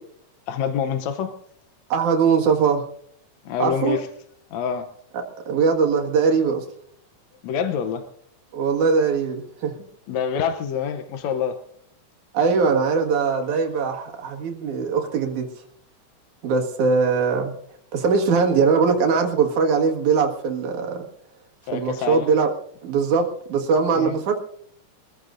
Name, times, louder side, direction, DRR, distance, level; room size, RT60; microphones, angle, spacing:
voice 1, 0.5-1.3 3.5-4.1 4.5-4.9 7.4-8.1 10.1-11.6 21.7-22.3 23.9-24.2, left 7 dB, 70° left, 7 dB, 2.0 m, -26 dB
voice 2, 1.9-2.8 3.6-4.0 5.5-6.6 8.5-9.7 12.3-15.5 16.4-17.5 17.9-21.0 21.7-22.5 22.8-24.4, right 5 dB, 80° right, 2 dB, 3.2 m, -21 dB
25.0 x 15.0 x 2.6 m, 0.65 s
omnidirectional pair, 3.5 m